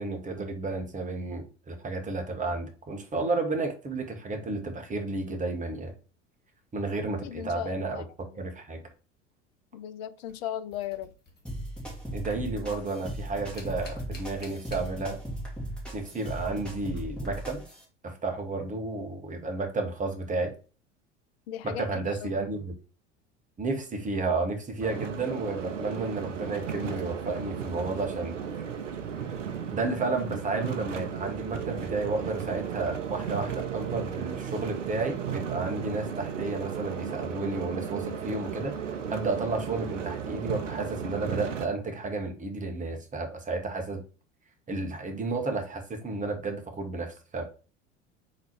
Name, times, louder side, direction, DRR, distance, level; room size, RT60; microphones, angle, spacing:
voice 1, 0.0-5.9 6.7-8.0 8.3-8.8 12.1-15.2 15.9-17.6 18.0-20.5 21.6-22.7 23.6-28.3 29.7-38.7 39.1-44.0 44.7-47.4, right 3 dB, 20° right, 1.1 m, -32 dB
voice 2, 7.2-8.0 9.7-11.1 21.5-22.3, left 11 dB, 60° left, 0.5 m, -37 dB
sound 1, 10.3-12.0 12.2-15.4 15.7-17.4 19.3-19.4 20.3-20.4, left 2 dB, 25° left, 1.5 m, -52 dB
sound 2, 11.5-17.8, right 1 dB, 5° left, 2.2 m, -37 dB
sound 3, 24.8-41.7, right 7 dB, 80° right, 0.7 m, -35 dB
3.9 x 3.1 x 4.3 m
figure-of-eight pair, 75°, 36 cm